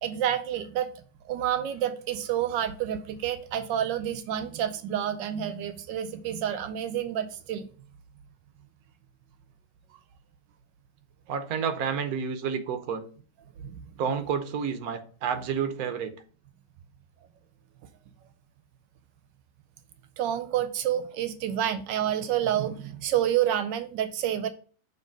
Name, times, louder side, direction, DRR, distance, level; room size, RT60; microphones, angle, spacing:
voice 1, 0.0-0.9 1.3-7.7 13.6-13.7 20.2-24.5, right 10 dB, 85° right, 1.3 m, -29 dB
voice 2, 11.3-13.0 14.0-16.1, right 7 dB, 60° right, 1.2 m, -30 dB
6.7 x 3.3 x 5.2 m
omnidirectional pair, 1.9 m